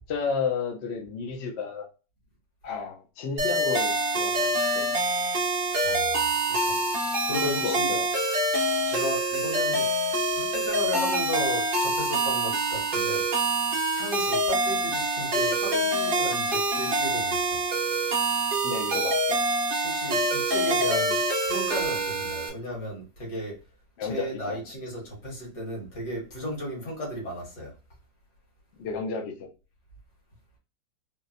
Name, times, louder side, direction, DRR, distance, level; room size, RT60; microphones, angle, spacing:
voice 1, 0.1-1.9 2.6-5.0 7.4-8.1 18.6-19.4 24.0-24.6 28.8-29.5, left 5 dB, 90° left, 0.5 m, -32 dB
sound 1, 3.4-22.5, right 2 dB, 55° right, 0.6 m, -26 dB
voice 2, 5.8-6.7 7.3-8.0 8.9-9.9 10.4-13.2 13.9-17.6 19.8-21.2 21.5-23.6 24.0-27.7, equal, 65° left, 2.0 m, -35 dB
3.8 x 2.1 x 2.5 m
omnidirectional pair, 2.0 m